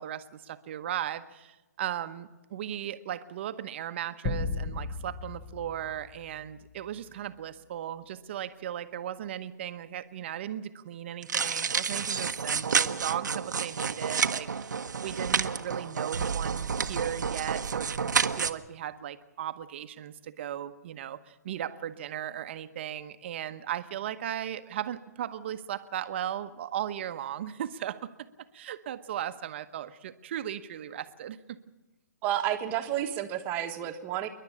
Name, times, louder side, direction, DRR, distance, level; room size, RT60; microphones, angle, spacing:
voice 1, 0.0-14.7 15.0-28.3 28.5-31.6, right 11 dB, 40° right, 11 dB, 1.0 m, -37 dB
sound 1, 4.2-6.8, left 3 dB, 15° left, 1.2 m, -35 dB
sound 2, 11.2-18.5, right 6 dB, 85° right, 1.0 m, -29 dB
voice 2, 32.2-34.3, right 11 dB, 20° right, 6 dB, 1.4 m, -30 dB
28.0 x 11.5 x 8.5 m, 1.1 s
hypercardioid pair, 160°, 9 cm